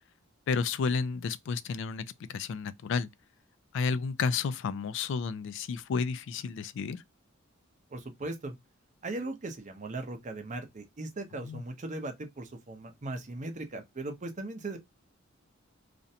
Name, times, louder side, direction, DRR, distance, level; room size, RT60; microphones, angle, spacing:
voice 1, 0.5-3.1 3.7-7.0 11.4-11.6, left 5 dB, 65° left, 0.3 m, -31 dB
voice 2, 7.9-8.5 9.0-14.8, right 2 dB, 40° right, 0.6 m, -38 dB
2.5 x 2.1 x 2.6 m
head